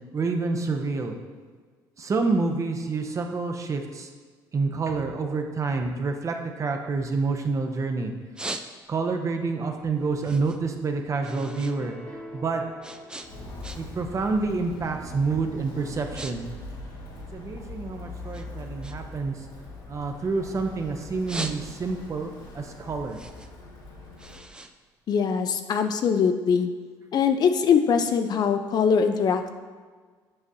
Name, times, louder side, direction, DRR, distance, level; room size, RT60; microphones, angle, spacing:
voice 1, 0.1-1.1 2.0-4.1 4.5-8.1 8.9-11.9 12.3-12.6 13.7-16.4 17.3-19.3 19.9-23.2, right 4 dB, 35° right, 4 dB, 0.8 m, -28 dB
sound 1, 6.8-7.7 8.1-9.2 9.6-11.8 12.1-14.1 14.4-14.7 15.3-15.5 15.8-16.3 16.6-17.8 18.3-20.6 21.0-22.1 22.5-25.6, right 2 dB, 10° right, 0.4 m, -40 dB
sound 2, 11.3-14.5, left 2 dB, 10° left, 0.9 m, -44 dB
Walk footsteps, 13.2-24.5, left 2 dB, 70° left, 2.0 m, -42 dB
voice 2, 25.1-26.7 27.1-29.5, left 6 dB, 50° left, 8 dB, 0.5 m, -22 dB
7.6 x 6.0 x 2.8 m, 1.5 s
supercardioid pair, 90°, 9 cm